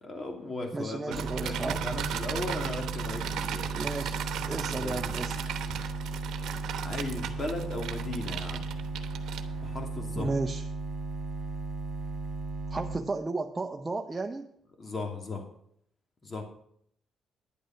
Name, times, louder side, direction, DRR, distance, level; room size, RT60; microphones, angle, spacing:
voice 1, 0.0-3.9 4.7-5.1 6.8-8.7 9.6-10.3 14.8-15.5 16.2-16.4, left 2 dB, 35° left, 3 dB, 2.7 m, -37 dB
voice 2, 0.7-1.8 3.7-4.2 4.4-5.6 10.2-10.6 12.7-14.5, right 3 dB, 20° right, 3 dB, 0.8 m, -33 dB
sound 1, 1.1-13.0, right 3 dB, 55° right, 1.9 m, -36 dB
sound 2, 1.1-9.8, right 9 dB, 80° right, 1.0 m, -37 dB
10.0 x 8.5 x 5.7 m, 0.69 s
cardioid pair, 90°, 0 cm